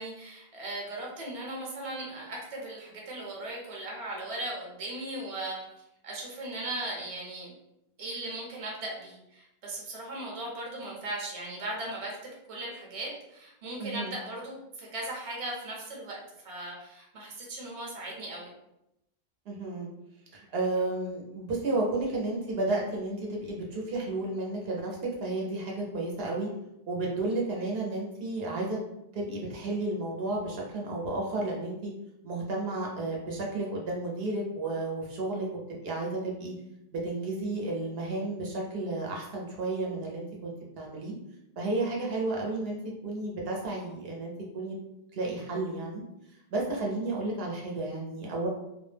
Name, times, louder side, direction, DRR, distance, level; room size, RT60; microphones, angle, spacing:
voice 1, 0.0-5.6 6.0-7.5 8.0-12.2 12.5-18.5, right 1 dB, 40° right, -2 dB, 0.6 m, -38 dB
voice 2, 13.8-14.1 19.5-19.9 20.3-26.5 26.9-28.8 29.1-31.9 32.2-35.5 35.8-36.5 36.9-41.1 41.6-42.8 43.0-44.8 45.1-46.0 46.5-48.5, right 2 dB, 75° right, -2 dB, 0.8 m, -32 dB
2.3 x 2.0 x 3.2 m, 0.86 s
omnidirectional pair, 1.0 m